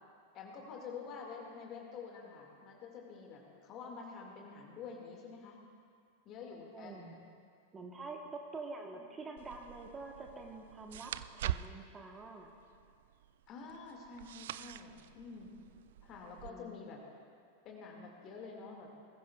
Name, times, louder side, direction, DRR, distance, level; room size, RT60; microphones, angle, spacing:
voice 1, 0.3-5.6 6.3-7.1 13.5-15.5 16.0-17.0 17.6-18.9, left 5 dB, 35° left, -1 dB, 2.1 m, -48 dB
voice 2, 6.7-7.2 7.7-12.5 16.4-16.9, right 3 dB, 20° right, 2 dB, 1.2 m, -47 dB
page turn, 9.4-16.5, right 12 dB, 55° right, 0.3 m, -45 dB
20.5 x 15.0 x 2.4 m, 2.2 s
figure-of-eight pair, 90°, 0 cm